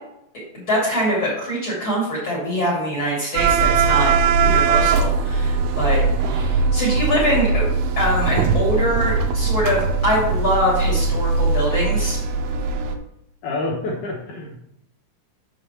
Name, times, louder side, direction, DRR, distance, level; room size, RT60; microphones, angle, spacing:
voice 1, 0.7-4.1 4.4-7.6 8.0-12.2, equal, 40° left, -4 dB, 2.1 m, -23 dB
sound 1, 3.4-13.0, right 4 dB, 80° right, 2.4 m, -20 dB
voice 2, 13.4-14.6, left 2 dB, 80° left, -3 dB, 1.8 m, -27 dB
7.0 x 4.6 x 6.7 m, 0.78 s
omnidirectional pair, 5.4 m